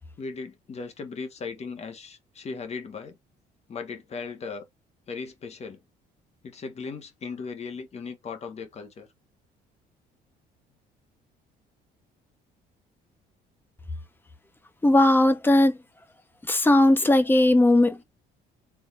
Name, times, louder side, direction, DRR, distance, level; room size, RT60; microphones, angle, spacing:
voice 1, 0.2-3.2 3.7-4.6 5.1-5.8 6.4-9.1, left 4 dB, 40° left, 1.5 m, -37 dB
voice 2, 14.8-15.7 16.5-18.0, left 1 dB, 10° left, 1.0 m, -18 dB
4.7 x 3.6 x 2.5 m
cardioid pair, 110°, 17 cm